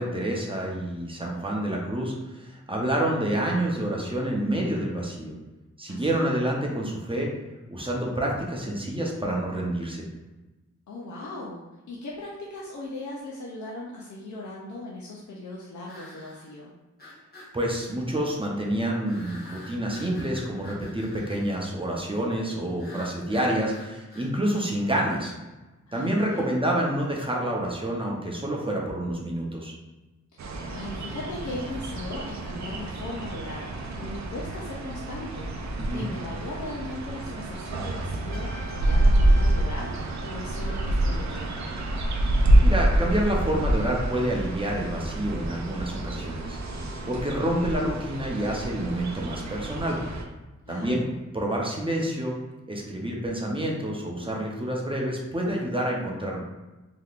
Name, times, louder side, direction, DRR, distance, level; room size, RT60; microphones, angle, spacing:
voice 1, 0.0-5.3 5.8-7.3 7.7-10.1 17.5-25.3 25.9-29.7 35.8-36.1 42.6-46.6 47.1-50.0 50.7-51.0 51.3-52.4 52.7-56.4, right 1 dB, 20° right, -2 dB, 0.6 m, -28 dB
voice 2, 5.9-6.3 10.9-16.7 25.9-26.6 30.3-30.4 30.7-41.7 50.6-51.1, left 2 dB, 80° left, -4 dB, 0.6 m, -38 dB
sound 1, 12.2-12.3 15.9-16.5 17.0-17.5 19.1-21.6 22.8-24.3, left 2 dB, 35° left, 1.0 m, -47 dB
sound 2, 30.4-50.2, right 1 dB, 70° right, 0.5 m, -27 dB
Trumpet, 38.3-41.2, right 2 dB, 90° right, 0.8 m, -45 dB
3.4 x 2.8 x 2.4 m, 1.1 s
wide cardioid pair, 85°, 29 cm